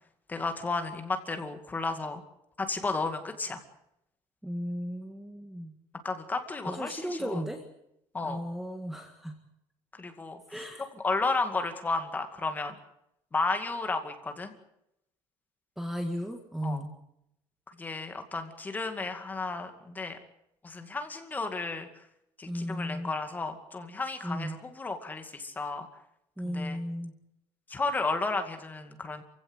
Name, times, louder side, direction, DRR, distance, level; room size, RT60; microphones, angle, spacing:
voice 1, 0.3-2.2 2.6-3.6 6.0-7.4 8.1-8.4 10.0-10.6 11.0-12.7 13.3-14.5 16.6-16.8 17.8-20.2 20.6-22.0 22.4-25.9 26.4-26.8 27.7-29.2, left 3 dB, 15° left, 6 dB, 2.3 m, -33 dB
voice 2, 4.4-5.7 6.6-7.6 8.2-9.4 10.5-10.8 15.8-16.9 22.5-23.2 24.2-24.6 26.4-27.1, equal, 5° right, 4 dB, 1.8 m, -35 dB
27.5 x 16.5 x 8.2 m, 0.81 s
cardioid pair, 170°, 12 cm